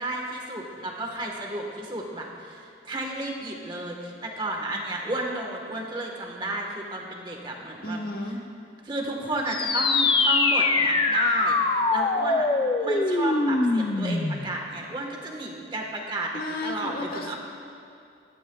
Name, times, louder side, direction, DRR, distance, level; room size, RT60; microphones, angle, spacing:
voice 1, 0.0-8.0 8.8-12.5 12.8-17.4, right 1 dB, 25° right, 0 dB, 1.4 m, -32 dB
voice 2, 7.8-8.4 16.3-17.4, left 2 dB, 50° left, 2 dB, 1.1 m, -33 dB
sound 1, 9.5-14.5, left 3 dB, 25° left, 0.5 m, -23 dB
20.0 x 13.5 x 2.3 m, 2.5 s
head